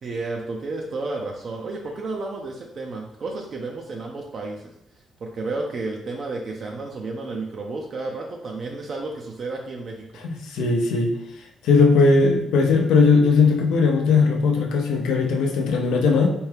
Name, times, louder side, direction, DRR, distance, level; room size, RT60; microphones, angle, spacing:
voice 1, 0.0-4.7 5.2-10.1, right 3 dB, 55° right, 0 dB, 0.5 m, -31 dB
voice 2, 10.2-11.1 11.6-16.3, left 4 dB, 90° left, 1 dB, 0.6 m, -18 dB
4.4 x 2.3 x 3.3 m, 0.79 s
cardioid pair, 90°, 0 cm